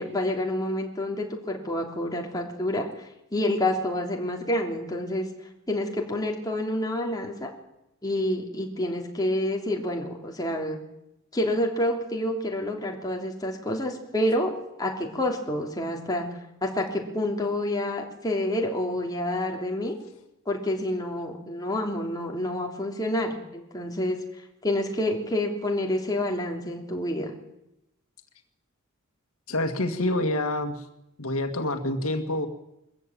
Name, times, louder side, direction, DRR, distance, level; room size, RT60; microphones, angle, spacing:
voice 1, 0.0-5.3 5.7-7.5 8.0-10.8 11.3-14.5 14.8-16.3 16.6-20.0 20.4-24.2 24.6-27.4, left 1 dB, 20° left, 1 dB, 3.1 m, -28 dB
voice 2, 29.5-30.9 31.2-32.5, left 1 dB, 80° left, 6 dB, 2.0 m, -27 dB
22.5 x 14.5 x 8.9 m, 0.87 s
head